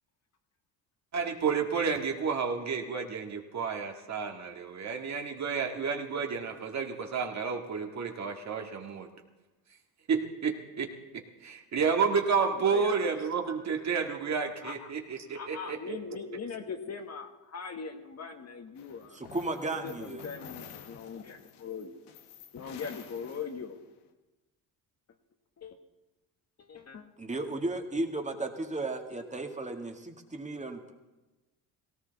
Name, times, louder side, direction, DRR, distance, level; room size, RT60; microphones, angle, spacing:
voice 1, 1.1-9.1 10.1-10.9 11.4-16.0, right 5 dB, 40° right, 3 dB, 2.0 m, -31 dB
voice 2, 12.4-13.1 14.6-14.9 15.3-19.2 19.6-22.0 22.5-23.8 25.6-25.7 26.6-27.0, left 5 dB, 40° left, 5 dB, 1.6 m, -41 dB
sound 1, 18.8-23.9, left 8 dB, 85° left, 1.5 m, -50 dB
voice 3, 19.1-20.2 27.2-30.9, right 2 dB, 15° right, 4 dB, 1.9 m, -34 dB
17.5 x 17.0 x 4.1 m, 1.1 s
supercardioid pair, 85°, 40 cm